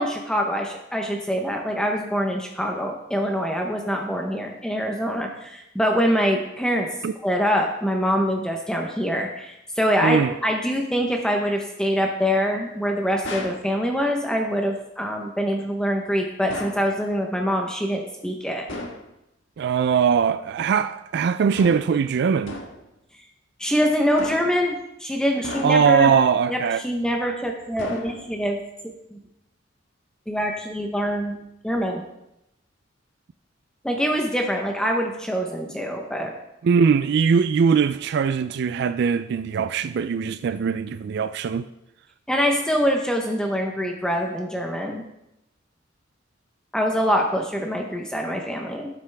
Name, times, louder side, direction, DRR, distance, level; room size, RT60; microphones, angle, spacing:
voice 1, 0.0-6.9 7.2-18.7 23.6-26.1 26.5-28.6 28.8-29.2 30.3-31.4 31.6-32.0 33.8-36.3 42.3-45.0 46.7-48.9, equal, 5° left, 0.8 m, -24 dB
voice 2, 10.0-10.3 19.6-22.6 25.6-26.8 36.6-41.7, right 6 dB, 60° right, 0.3 m, -21 dB
sound 1, 13.2-13.7 16.5-16.9 18.7-19.1 21.6-22.0 22.5-22.9 24.2-24.7 25.4-26.0 27.8-28.5, left 2 dB, 85° left, 1.5 m, -35 dB
12.5 x 8.7 x 3.4 m
head